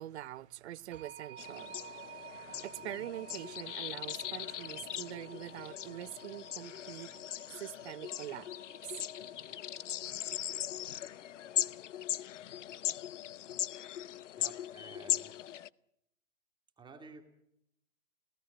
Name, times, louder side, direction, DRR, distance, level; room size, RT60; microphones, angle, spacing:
voice 1, 0.0-7.1 7.6-8.5 8.8-8.9, right 13 dB, 55° right, 0.8 m, -44 dB
sound 1, 0.9-11.5, right 8 dB, 70° right, 2.3 m, -54 dB
sound 2, 1.4-15.7, left 11 dB, 65° left, 0.9 m, -39 dB
voice 2, 14.4-15.3 16.8-17.3, right 4 dB, 10° right, 2.3 m, -52 dB
27.5 x 17.5 x 7.9 m
hypercardioid pair, 130°, 39 cm